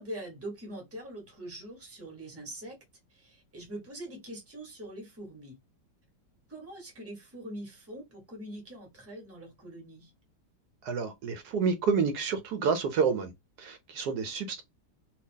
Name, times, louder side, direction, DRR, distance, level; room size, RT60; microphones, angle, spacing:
voice 1, 0.0-2.8 3.1-5.6 6.5-10.1, right 1 dB, 10° right, 1.0 m, -43 dB
voice 2, 10.8-13.3 13.6-14.6, right 5 dB, 75° right, 1.1 m, -29 dB
2.8 x 2.6 x 3.5 m
omnidirectional pair, 1.8 m